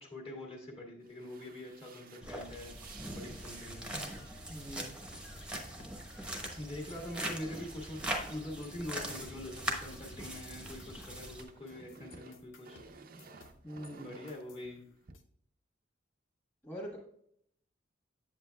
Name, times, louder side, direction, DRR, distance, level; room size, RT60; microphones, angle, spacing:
voice 1, 0.0-2.7 3.1-3.9 6.6-12.8 14.0-14.8, left 1 dB, 30° left, 0 dB, 1.7 m, -44 dB
sound 1, 1.0-10.8 11.1-15.1, right 4 dB, 50° right, 0.6 m, -56 dB
sound 2, 2.2-11.4, right 1 dB, 5° right, 1.0 m, -41 dB
sound 3, 4.1-7.0 7.3-8.3 8.6-13.9 14.3-15.2, left 4 dB, 85° left, 0.7 m, -60 dB
voice 2, 4.5-4.9 13.6-14.1 16.6-17.0, equal, 10° left, -5 dB, 1.4 m, -43 dB
8.1 x 7.6 x 2.3 m, 0.69 s
head